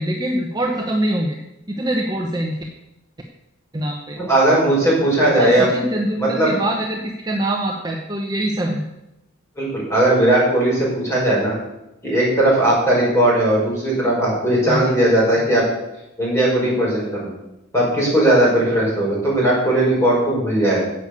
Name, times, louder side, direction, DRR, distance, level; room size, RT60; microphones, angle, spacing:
voice 1, 0.0-1.4 1.7-2.6 3.7-4.2 5.4-8.8 14.7-15.1 15.4-15.5, right 1 dB, 20° right, 1 dB, 0.9 m, -24 dB
voice 2, 4.3-5.7 6.2-6.5 9.6-11.5 12.0-15.6 16.2-17.3 17.7-20.8, right 1 dB, 15° left, -5 dB, 5.6 m, -17 dB
10.0 x 8.3 x 6.8 m, 0.91 s
head